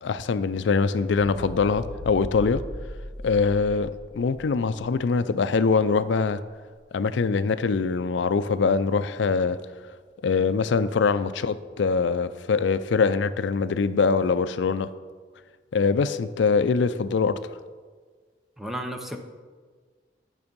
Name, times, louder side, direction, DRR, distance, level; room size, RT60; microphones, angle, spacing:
voice 1, 0.0-2.6 3.2-6.4 6.9-9.6 10.2-14.9 15.7-17.3, left 5 dB, 85° left, 0.4 m, -23 dB
sound 1, 1.1-5.2 5.7-5.9, left 1 dB, 50° right, 2.3 m, -38 dB
voice 2, 18.6-19.2, equal, ahead, 0.7 m, -33 dB
9.7 x 6.1 x 5.2 m
head